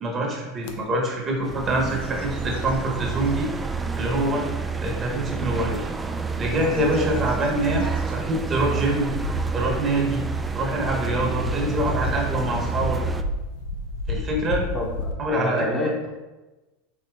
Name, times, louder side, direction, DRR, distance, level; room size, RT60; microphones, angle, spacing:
voice 1, 0.0-3.5 4.0-4.5 4.8-5.9 6.4-9.1 9.5-10.2 10.5-13.0 14.1-14.6 15.2-15.7, right 1 dB, 35° right, 0 dB, 1.3 m, -25 dB
sound 1, 0.6-0.8 1.3-1.5 1.9-3.4 4.0-4.1 5.8-15.1, left 3 dB, 70° left, 0.5 m, -33 dB
sound 2, 1.4-13.2, right 5 dB, 15° right, 0.3 m, -29 dB
voice 2, 14.7-16.1, left 1 dB, 20° left, -2 dB, 0.9 m, -28 dB
4.4 x 2.8 x 3.5 m, 1.1 s
hypercardioid pair, 95°, 0 cm